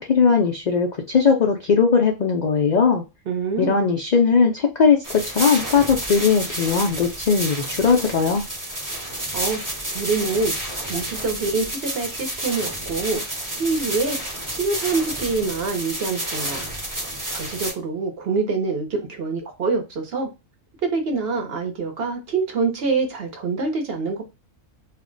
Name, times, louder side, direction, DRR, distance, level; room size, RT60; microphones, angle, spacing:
voice 1, 0.0-3.0 3.6-8.4, left 5 dB, 75° left, 0.4 m, -19 dB
voice 2, 3.3-3.8 9.3-9.6 9.9-10.5 10.8-14.2 14.5-16.7 17.3-20.3 20.9-24.2, right 4 dB, 55° right, 0.8 m, -25 dB
sound 1, 5.0-17.7, right 1 dB, 20° right, 0.7 m, -30 dB
2.4 x 2.1 x 3.7 m
omnidirectional pair, 1.3 m